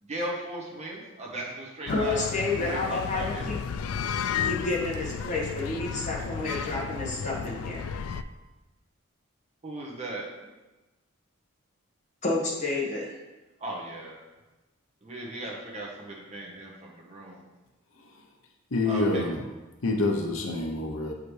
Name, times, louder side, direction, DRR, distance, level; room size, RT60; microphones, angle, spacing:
voice 1, 0.0-3.5 9.6-10.3 13.6-14.2 15.0-17.4 18.8-19.2, right 1 dB, 30° right, -3 dB, 1.2 m, -37 dB
sound 1, 1.9-8.2, left 7 dB, 90° left, 0.3 m, -33 dB
voice 2, 1.9-3.6 4.4-7.8 12.2-13.2, left 3 dB, 35° left, -4 dB, 1.4 m, -30 dB
voice 3, 18.7-19.4 19.8-21.1, left 2 dB, 65° left, 2 dB, 0.8 m, -27 dB
8.0 x 4.9 x 3.2 m, 1.1 s
head